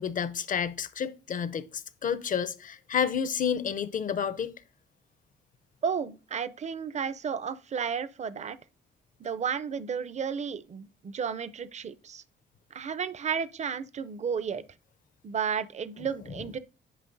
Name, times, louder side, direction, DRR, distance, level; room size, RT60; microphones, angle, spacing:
voice 1, 0.0-4.5, left 7 dB, 40° left, 0.6 m, -30 dB
voice 2, 5.8-8.6 9.2-12.2 12.7-14.6 15.2-16.6, right 7 dB, 35° right, 0.5 m, -32 dB
10.0 x 5.3 x 2.6 m
cardioid pair, 90°, 20 cm